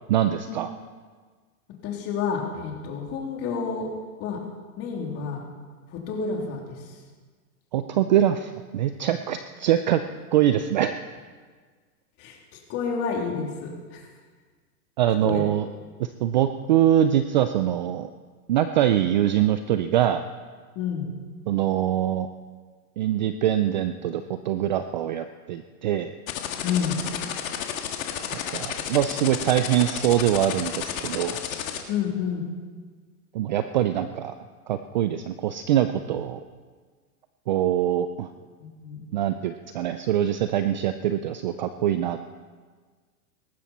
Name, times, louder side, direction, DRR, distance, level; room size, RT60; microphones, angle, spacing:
voice 1, 0.1-0.7 7.7-10.0 10.3-11.0 15.0-15.7 16.0-18.1 18.5-20.2 21.5-22.3 23.0-26.1 28.5-31.4 33.3-34.3 34.7-36.4 37.5-38.3 39.1-42.2, right 11 dB, 35° right, 10 dB, 0.4 m, -23 dB
voice 2, 1.8-3.9 4.2-4.4 4.8-5.4 5.9-7.0 12.2-14.1 15.2-15.4 20.7-21.2 26.6-27.0 31.9-32.5 38.6-39.0, left 6 dB, 30° left, 0 dB, 3.2 m, -30 dB
sound 1, 26.3-31.8, left 10 dB, 60° left, 2.0 m, -31 dB
18.5 x 15.0 x 4.3 m, 1.5 s
hypercardioid pair, 140°, 45 cm